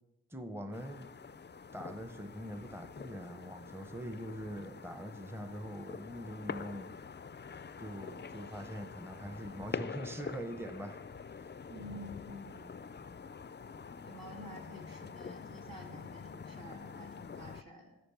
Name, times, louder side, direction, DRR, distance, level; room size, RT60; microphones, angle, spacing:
voice 1, 0.3-1.1 1.7-6.9 7.8-11.0 11.3-11.5 11.9-12.2, equal, 5° right, 9 dB, 0.7 m, -43 dB
sound 1, 0.7-17.6, left 5 dB, 35° left, 0.4 m, -46 dB
voice 2, 11.7-12.7 14.0-18.0, equal, 75° right, 1 dB, 1.8 m, -50 dB
10.0 x 4.9 x 6.7 m, 0.99 s
wide cardioid pair, 45°, 34 cm